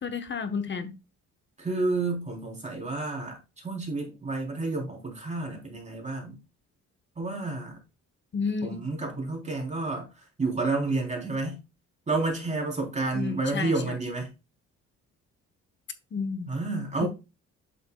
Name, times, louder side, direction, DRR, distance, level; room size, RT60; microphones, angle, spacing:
voice 1, 0.0-0.9 8.3-8.9 13.1-13.7 16.1-16.5 17.0-17.1, left 5 dB, 40° left, 1.1 m, -31 dB
voice 2, 1.6-3.4 3.6-6.3 7.2-7.8 8.6-10.1 10.4-11.6 12.1-14.3 16.5-17.1, right 3 dB, 25° right, 3.5 m, -30 dB
8.4 x 6.6 x 2.3 m
cardioid pair, 90°, 30 cm